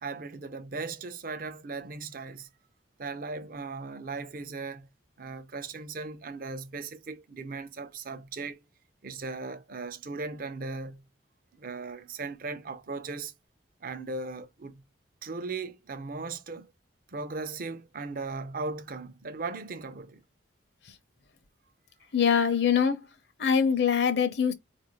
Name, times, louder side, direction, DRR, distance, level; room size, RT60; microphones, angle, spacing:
voice 1, 0.0-2.5 3.0-4.9 5.2-8.6 9.0-11.0 11.5-13.3 13.8-14.8 15.2-16.7 17.1-20.2, right 3 dB, 50° right, 0.5 m, -37 dB
voice 2, 22.1-23.1 23.4-24.5, left 7 dB, 60° left, 0.6 m, -23 dB
4.3 x 2.6 x 2.9 m
head